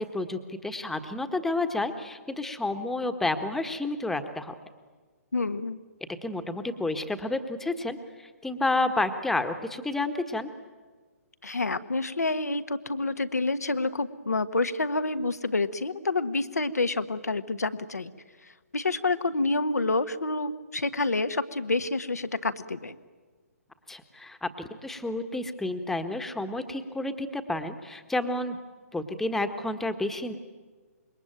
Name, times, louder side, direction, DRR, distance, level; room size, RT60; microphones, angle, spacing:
voice 1, 0.0-4.5 6.2-10.5 23.9-28.6 28.9-30.3, left 2 dB, 5° left, 7 dB, 1.5 m, -30 dB
voice 2, 5.3-5.8 11.4-18.1 18.7-22.9, left 3 dB, 80° left, 10 dB, 1.5 m, -28 dB
26.5 x 23.0 x 9.1 m, 1.4 s
figure-of-eight pair, 130°, 9 cm